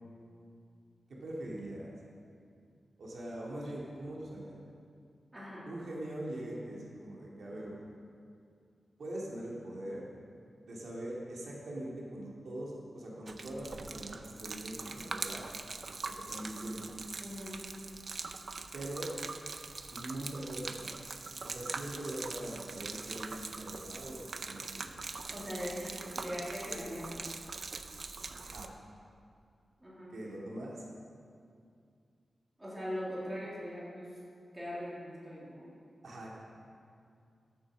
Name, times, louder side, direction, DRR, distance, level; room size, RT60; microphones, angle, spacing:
voice 1, 1.1-1.9 3.0-4.6 5.6-7.9 9.0-10.0 10.6-15.5 16.0-16.9 18.7-19.2 19.9-21.1 21.4-25.0 28.4-28.7 30.1-30.8 36.0-36.4, right 1 dB, 65° right, -4 dB, 2.4 m, -42 dB
voice 2, 5.3-5.7 17.2-17.6 25.3-27.3 29.8-30.2 32.6-34.2 34.5-35.7, equal, 15° right, -7 dB, 3.3 m, -41 dB
Gurgling / Liquid, 13.3-28.7, right 4 dB, 45° right, 0.6 m, -42 dB
13.5 x 8.8 x 6.2 m, 2.3 s
wide cardioid pair, 175°, 0 cm